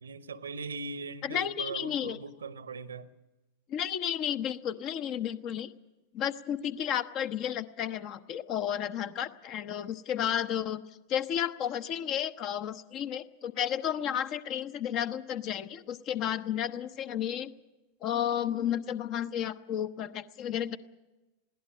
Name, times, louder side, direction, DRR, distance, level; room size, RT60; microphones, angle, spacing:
voice 1, 0.0-3.1, right 4 dB, 70° right, 0.9 m, -40 dB
voice 2, 1.2-2.2 3.7-5.7 6.1-10.8 11.1-17.5 18.0-20.8, left 10 dB, 40° left, 0.9 m, -32 dB
21.5 x 16.5 x 8.4 m
figure-of-eight pair, 90°, 0 cm